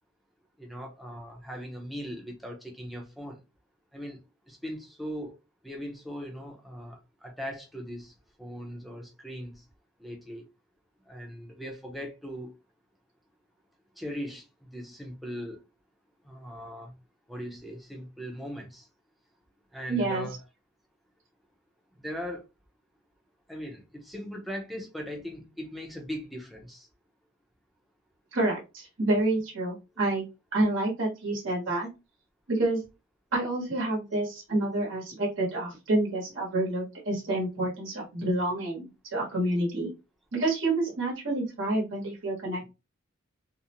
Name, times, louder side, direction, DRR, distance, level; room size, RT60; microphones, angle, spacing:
voice 1, 0.6-3.4 3.9-4.2 4.5-5.3 5.6-8.1 8.4-9.6 10.0-10.4 11.1-12.5 14.0-15.6 16.2-16.9 17.3-18.9 19.7-20.4 22.0-22.4 23.5-26.9, equal, ahead, 0.5 m, -39 dB
voice 2, 19.9-20.3 28.3-30.3 30.5-31.9 32.5-32.8 33.3-39.9 40.3-42.7, right 2 dB, 70° right, 1.0 m, -28 dB
2.5 x 2.0 x 2.8 m
head